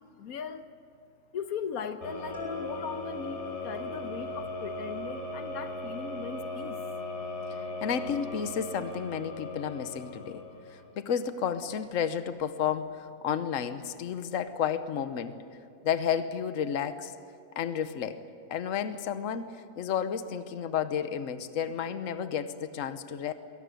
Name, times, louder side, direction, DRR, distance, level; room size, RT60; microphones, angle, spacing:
voice 1, 0.2-0.7 1.3-6.8, left 7 dB, 85° left, 10 dB, 1.4 m, -38 dB
sound 1, 2.0-10.9, left 1 dB, 50° left, 5.1 m, -38 dB
sound 2, 2.3-4.1, left 5 dB, 35° left, 7.8 m, -42 dB
voice 2, 7.8-10.4 10.7-15.4 15.8-17.1 17.6-18.2 18.5-23.3, left 8 dB, 65° left, 11 dB, 1.3 m, -32 dB
23.0 x 18.0 x 9.0 m, 2.5 s
omnidirectional pair, 1.5 m